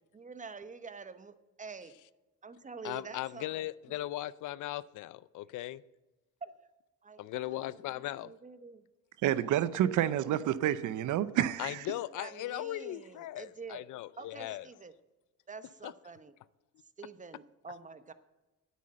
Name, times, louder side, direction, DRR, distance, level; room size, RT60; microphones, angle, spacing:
voice 1, 0.0-1.9 2.4-3.7 6.4-6.5 7.0-8.8 9.4-10.4 12.2-13.8 14.2-14.9 15.5-16.3 17.0-18.1, right 4 dB, 25° right, 0.9 m, -47 dB
voice 2, 2.8-5.8 7.2-8.3 11.6-14.7 15.8-15.9, left 15 dB, 80° left, 0.5 m, -38 dB
voice 3, 9.2-11.9, right 11 dB, 80° right, 0.7 m, -29 dB
9.4 x 8.4 x 7.6 m
cardioid pair, 90°, 30 cm